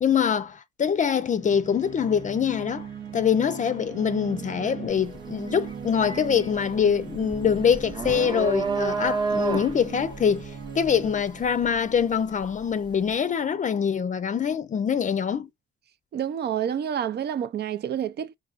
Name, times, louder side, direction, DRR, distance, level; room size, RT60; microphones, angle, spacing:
voice 1, 0.0-2.9 3.1-15.5, left 7 dB, 40° left, 0.5 m, -24 dB
sound 1, 1.3-12.8, right 7 dB, 80° right, 0.9 m, -39 dB
sound 2, 4.9-5.2 5.5-12.5, right 4 dB, 20° right, 0.8 m, -30 dB
voice 2, 16.1-18.3, right 9 dB, 55° right, 0.5 m, -28 dB
4.8 x 2.8 x 2.4 m
cardioid pair, 90°, 20 cm